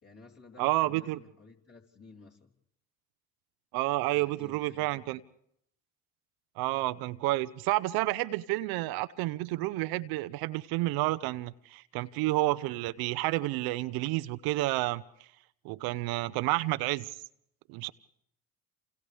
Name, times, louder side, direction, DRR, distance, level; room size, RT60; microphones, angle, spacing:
voice 1, 0.0-2.5 3.9-5.1, left 3 dB, 35° left, -1 dB, 3.8 m, -54 dB
voice 2, 0.6-1.2 3.7-5.2 6.6-15.0 15.6-17.1 17.7-17.9, right 18 dB, 65° right, 14 dB, 0.7 m, -30 dB
28.5 x 28.5 x 3.4 m, 0.77 s
hypercardioid pair, 70°, 39 cm